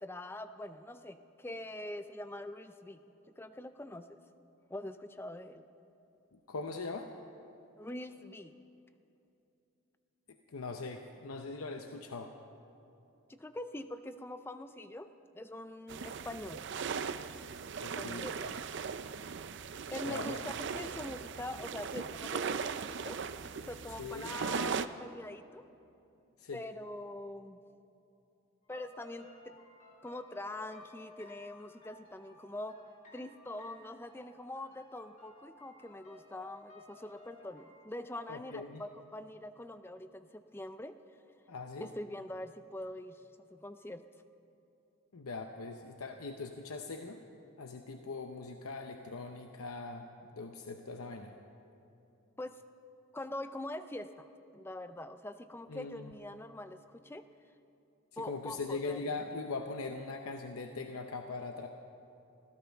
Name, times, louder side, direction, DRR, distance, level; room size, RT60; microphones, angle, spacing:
voice 1, 0.0-3.0 3.4-4.2 4.7-5.6 7.8-8.6 13.3-16.6 18.0-18.6 19.9-23.2 23.6-25.6 26.5-27.6 28.7-29.6 30.0-32.8 33.1-41.0 41.8-44.0 52.4-52.6 53.1-57.2 58.2-59.1, left 1 dB, 10° left, 10 dB, 0.4 m, -44 dB
voice 2, 6.3-7.1 10.3-12.3 17.8-18.3 20.0-20.4 24.0-24.3 26.4-26.6 38.3-38.8 41.5-41.9 45.1-47.2 47.6-50.1 50.3-51.4 55.7-56.1 58.1-61.7, left 3 dB, 85° left, 5 dB, 0.8 m, -41 dB
sound 1, 15.9-24.9, right 6 dB, 55° right, 0.4 m, -38 dB
sound 2, 28.6-37.7, left 1 dB, 35° left, 3.8 m, -57 dB
24.5 x 16.0 x 3.5 m, 2.8 s
head